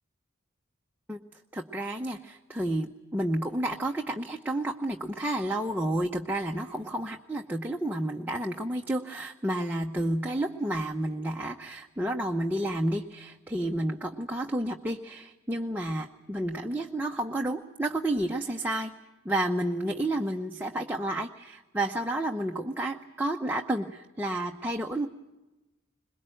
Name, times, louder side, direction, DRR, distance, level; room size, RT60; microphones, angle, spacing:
voice 1, 1.5-18.9 19.2-25.1, right 1 dB, 10° right, 1 dB, 0.8 m, -31 dB
22.0 x 21.5 x 9.0 m, 1.1 s
head